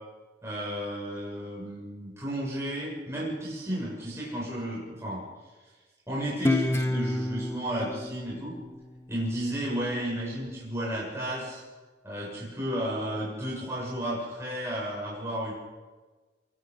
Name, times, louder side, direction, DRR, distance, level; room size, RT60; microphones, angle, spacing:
voice 1, 0.4-5.2 6.1-8.5 9.1-11.6 12.0-15.5, equal, 15° right, -5 dB, 6.8 m, -33 dB
Guitar, 6.4-9.7, left 1 dB, 15° left, 0.9 m, -30 dB
25.0 x 22.0 x 5.4 m, 1.3 s
head